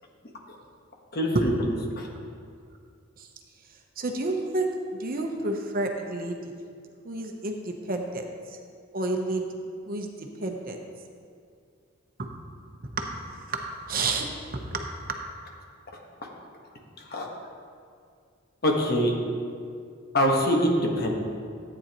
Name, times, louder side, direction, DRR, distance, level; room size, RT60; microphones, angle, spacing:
voice 1, 1.1-2.1 17.1-17.3 18.6-19.1 20.1-21.1, equal, 50° left, 0 dB, 1.4 m, -24 dB
voice 2, 4.0-4.7 5.0-6.5 7.0-8.6 8.9-9.5 9.9-10.8 12.2-12.4 12.9-14.9, right 2 dB, 45° right, 3 dB, 0.9 m, -30 dB
14.0 x 8.9 x 3.0 m, 2.3 s
head